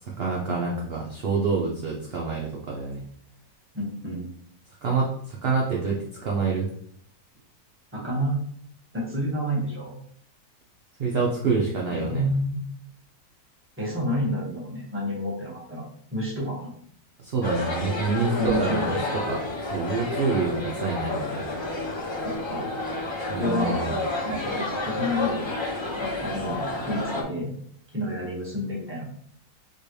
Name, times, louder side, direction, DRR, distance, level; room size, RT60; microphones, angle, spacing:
voice 1, 0.0-3.1 4.8-6.7 11.0-12.2 17.2-21.5 23.3-23.9, right 4 dB, 50° right, -2 dB, 0.8 m, -27 dB
voice 2, 3.7-4.3 7.9-8.3 8.9-10.0 11.9-12.7 13.8-15.8 16.1-16.7 18.4-18.9 22.2-22.7 23.3-23.8 24.1-25.5 26.0-27.6 27.9-29.1, equal, 10° right, -4 dB, 1.2 m, -29 dB
sound 1, 17.4-27.2, left 2 dB, 25° left, 0.6 m, -30 dB
4.5 x 3.3 x 3.1 m, 0.63 s
omnidirectional pair, 1.7 m